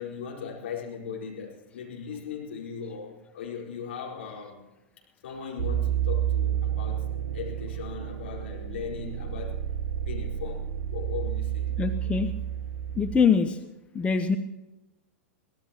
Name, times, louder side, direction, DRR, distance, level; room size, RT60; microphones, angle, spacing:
voice 1, 0.0-4.7 5.2-7.1 7.3-9.6 10.0-11.7, left 7 dB, 60° left, -3 dB, 4.7 m, -38 dB
sound 1, 5.6-13.2, right 10 dB, 60° right, 1.2 m, -30 dB
voice 2, 11.8-12.3 13.0-13.6 13.9-14.4, left 6 dB, 15° left, 8 dB, 0.8 m, -23 dB
24.0 x 17.0 x 3.0 m, 1.0 s
figure-of-eight pair, 95°, 7 cm